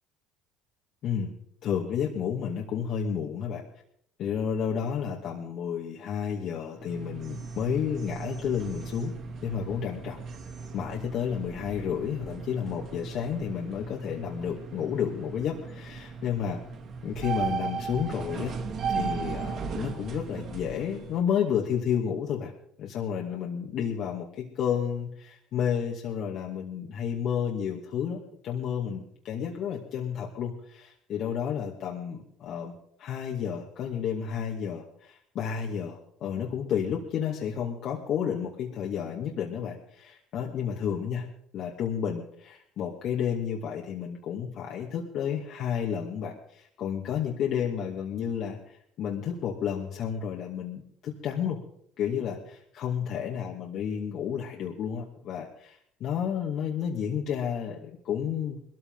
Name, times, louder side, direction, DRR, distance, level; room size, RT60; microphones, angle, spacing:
voice 1, 1.6-3.6 4.2-9.1 9.4-10.2 10.7-16.6 17.0-18.5 18.9-22.5 22.8-32.7 33.0-41.3 41.5-51.6 52.0-58.6, left 8 dB, 60° left, -1 dB, 2.3 m, -31 dB
sound 1, 6.8-21.2, right 5 dB, 55° right, 2.5 m, -36 dB
20.5 x 14.0 x 4.0 m, 0.69 s
supercardioid pair, 80°, 0 cm